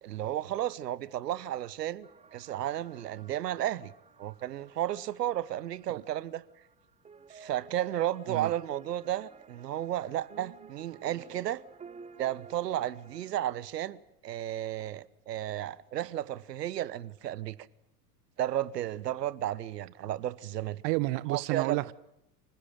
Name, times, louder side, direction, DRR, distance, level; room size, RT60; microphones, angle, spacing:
voice 1, 0.0-3.9 4.2-6.4 7.3-11.6 12.2-17.6 18.4-20.8 21.3-21.8, right 12 dB, 75° right, 1.1 m, -33 dB
sound 1, 2.0-13.3, right 5 dB, 15° right, 0.9 m, -54 dB
voice 2, 20.8-21.9, right 22 dB, 45° right, 1.0 m, -30 dB
26.5 x 16.0 x 8.8 m
hypercardioid pair, 95°, 49 cm